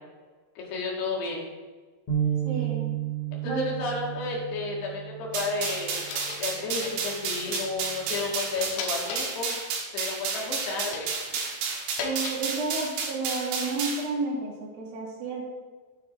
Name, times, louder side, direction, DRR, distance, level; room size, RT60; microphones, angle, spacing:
voice 1, 0.6-1.5 3.3-6.0 6.4-9.5 9.9-11.1, left 3 dB, 70° left, -3 dB, 3.7 m, -32 dB
sound 1, 2.1-6.3 6.8-7.0 7.9-8.3, right 10 dB, 50° left, 1.8 m, -32 dB
voice 2, 2.4-2.9 3.4-3.8 12.0-15.5, right 3 dB, 65° right, -3 dB, 3.1 m, -31 dB
sound 2, 5.3-6.5 6.8-7.8 8.1-9.7 10.4-12.5 12.8-13.3, left 5 dB, 85° left, 3.5 m, -39 dB
sound 3, 5.3-14.1, right 5 dB, 80° right, 3.7 m, -32 dB
13.0 x 9.4 x 2.6 m, 1.4 s
omnidirectional pair, 5.0 m